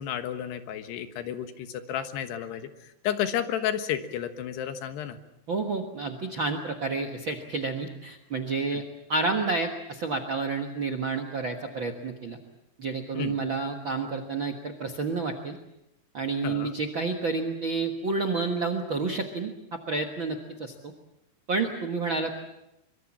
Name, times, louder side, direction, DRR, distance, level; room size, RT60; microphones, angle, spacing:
voice 1, 0.0-5.2 8.7-8.8 13.2-13.4 16.4-16.7, left 9 dB, 85° left, 9 dB, 3.5 m, -32 dB
voice 2, 5.5-8.8 9.1-12.4 12.8-15.6 16.1-19.5 19.9-20.9 21.5-22.4, right 3 dB, 60° right, 8 dB, 1.2 m, -30 dB
24.0 x 23.5 x 7.3 m, 0.87 s
omnidirectional pair, 4.7 m